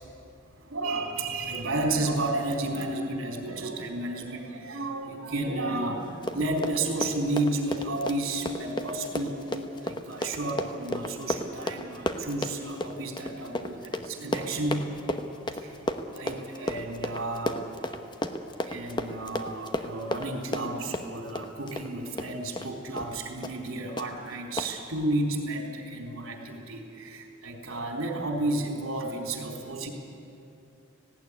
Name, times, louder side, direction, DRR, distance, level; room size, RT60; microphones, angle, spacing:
voice 1, 0.6-14.9 15.5-15.8 16.1-17.6 18.6-29.9, right 2 dB, 80° right, 1 dB, 3.8 m, -32 dB
Run, 6.1-22.7 23.0-23.1 23.4-23.7 24.0-24.1 24.6-24.7, left 1 dB, 20° left, 0.9 m, -33 dB
18.5 x 16.0 x 10.0 m, 2.6 s
head